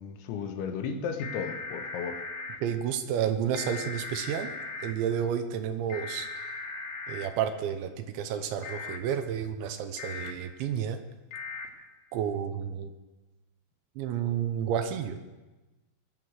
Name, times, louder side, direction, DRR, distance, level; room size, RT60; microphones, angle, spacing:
voice 1, 0.0-2.2, left 6 dB, 80° left, 6 dB, 3.4 m, -34 dB
sound 1, 1.2-2.6 3.5-4.9 5.9-7.3 8.6-9.0 10.0-10.3 11.3-11.7, left 4 dB, 60° left, 1.9 m, -38 dB
voice 2, 2.6-4.5 4.8-6.3 7.1-11.0 12.1-12.9 14.0-15.2, right 8 dB, 80° right, 7 dB, 3.1 m, -31 dB
21.0 x 7.6 x 6.4 m, 1.1 s
omnidirectional pair, 5.3 m